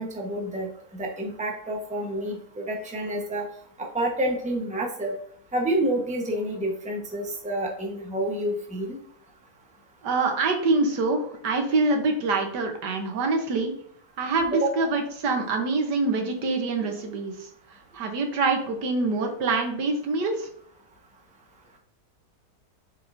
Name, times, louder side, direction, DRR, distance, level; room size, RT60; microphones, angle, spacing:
voice 1, 0.0-3.4 3.8-5.1 5.5-9.0 14.5-14.7, right 1 dB, 5° right, 0 dB, 1.0 m, -28 dB
voice 2, 10.0-13.7 14.2-17.5 17.9-20.5, right 3 dB, 80° right, 4 dB, 1.7 m, -25 dB
8.2 x 4.8 x 2.7 m, 0.63 s
omnidirectional pair, 1.8 m